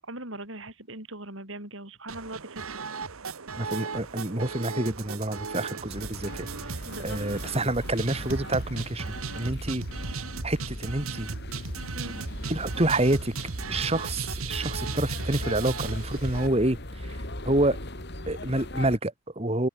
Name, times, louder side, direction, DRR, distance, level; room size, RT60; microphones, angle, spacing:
voice 1, 0.0-2.8 6.8-7.2 9.5-9.6 11.9-12.2, right 2 dB, 65° right, 7.9 m, -40 dB
sound 1, 2.1-16.5, right 4 dB, 80° right, 1.3 m, -36 dB
voice 2, 3.6-6.8 7.0-9.8 10.4-11.4 12.5-13.3 13.7-16.8 17.1-17.2 17.5-17.8 18.3-19.7, right 1 dB, 30° right, 2.2 m, -28 dB
sound 2, 5.9-19.0, left 1 dB, 50° left, 4.4 m, -39 dB
head